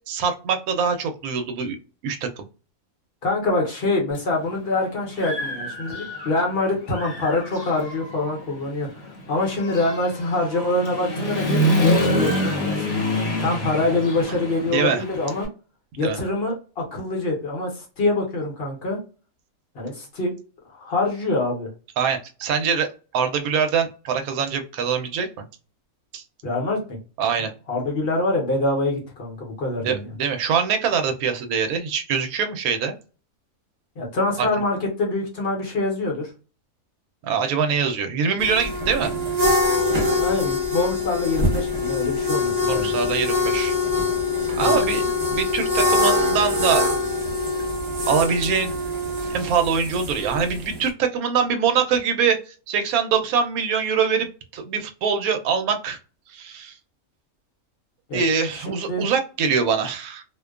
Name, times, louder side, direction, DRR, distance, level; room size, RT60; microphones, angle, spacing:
voice 1, 0.1-1.8 2.0-2.4 14.7-15.0 16.0-16.2 22.0-22.9 23.1-25.3 26.1-26.2 27.2-27.5 29.8-32.9 34.4-34.5 37.2-39.1 42.6-43.7 44.5-45.0 45.3-46.9 48.0-48.7 49.2-54.3 54.5-56.0 56.3-56.8 58.1-60.2, right 6 dB, 80° right, 6 dB, 1.0 m, -23 dB
voice 2, 3.2-13.0 13.4-15.5 16.0-19.0 19.7-20.3 20.7-21.7 26.4-27.0 27.7-30.1 34.0-36.3 40.1-42.9 44.5-44.8 58.1-58.2 58.6-59.1, left 2 dB, 50° left, -1 dB, 0.9 m, -25 dB
Human voice / Motorcycle, 4.2-4.3 4.7-6.5 6.9-15.5, equal, 65° left, 1.2 m, -26 dB
sound 1, 38.4-50.9, left 2 dB, 40° right, 0.7 m, -23 dB
2.5 x 2.2 x 2.3 m, 0.35 s
omnidirectional pair, 1.5 m